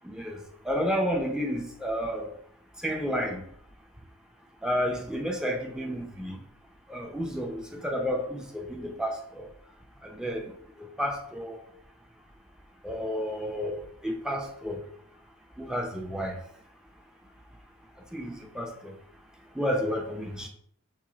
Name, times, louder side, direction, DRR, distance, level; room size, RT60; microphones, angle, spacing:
voice 1, 0.0-0.4 0.7-2.3 2.8-3.4 4.6-6.4 6.9-9.5 10.0-10.4 11.0-11.6 12.8-14.8 15.6-16.4 18.1-18.9 19.6-20.5, equal, 5° right, 2 dB, 0.6 m, -31 dB
6.2 x 2.1 x 3.9 m, 0.64 s
head